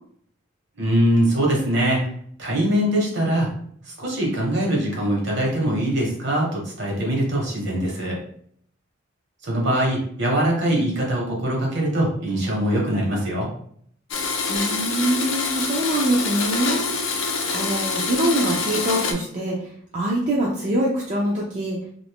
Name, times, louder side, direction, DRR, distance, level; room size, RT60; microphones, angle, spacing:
voice 1, 0.8-2.1 2.4-3.5 4.0-8.2 9.4-13.5, right 1 dB, 60° right, -2 dB, 1.2 m, -22 dB
Domestic sounds home sounds, 14.1-19.1, left 4 dB, 70° left, 0.6 m, -26 dB
voice 2, 14.5-16.8 17.5-19.6 19.9-21.8, right 1 dB, 35° right, -4 dB, 0.5 m, -23 dB
2.7 x 2.5 x 3.5 m, 0.63 s
head